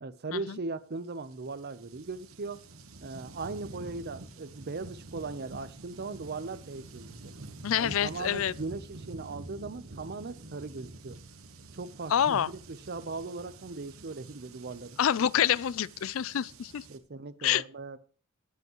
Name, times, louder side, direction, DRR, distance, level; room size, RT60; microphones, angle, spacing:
voice 1, 0.0-2.6 3.0-7.3 7.8-11.2 11.7-15.0 16.9-18.0, right 3 dB, 50° right, 0.7 m, -39 dB
sound 1, 0.9-17.0, right 2 dB, 75° right, 1.2 m, -48 dB
voice 2, 7.6-8.5 12.1-12.5 15.0-16.8 17.4-17.6, left 9 dB, 65° left, 0.4 m, -27 dB
18.5 x 8.0 x 3.0 m
head